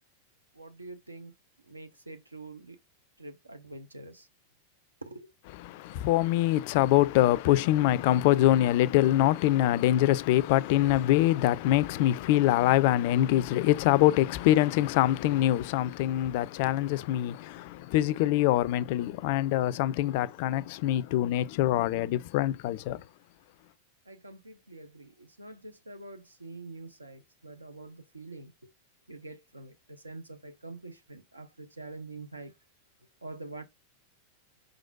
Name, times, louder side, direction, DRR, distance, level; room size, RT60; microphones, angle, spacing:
voice 1, 0.6-1.3 1.7-2.8 3.2-4.3 5.1-5.3 24.1-28.5 29.1-32.5 33.2-33.6, right 2 dB, 80° right, 0.6 m, -45 dB
voice 2, 5.5-23.0, left 14 dB, 50° left, 0.3 m, -24 dB
4.7 x 3.9 x 2.3 m
figure-of-eight pair, 90°, 0 cm